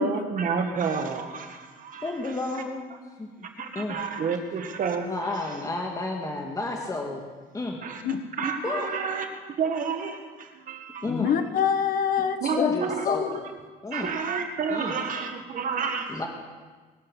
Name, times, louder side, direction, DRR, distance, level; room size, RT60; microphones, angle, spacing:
voice 1, 0.0-2.1 3.6-5.5 7.8-8.0 8.4-9.3 9.6-11.1 12.4-13.3 13.9-16.3, right 5 dB, 50° right, 5 dB, 1.7 m, -30 dB
voice 2, 2.0-3.3 3.8-4.0 5.1-7.2 7.5-7.8 8.6-9.0 11.0-11.3 12.4-13.4 13.8-14.1 14.7-14.9 16.1-16.3, left 2 dB, 20° left, 1 dB, 1.9 m, -31 dB
voice 3, 11.1-12.8 13.0-13.3, left 7 dB, 60° left, 8 dB, 1.3 m, -25 dB
22.0 x 7.7 x 6.3 m, 1.4 s
cardioid pair, 110°, 17 cm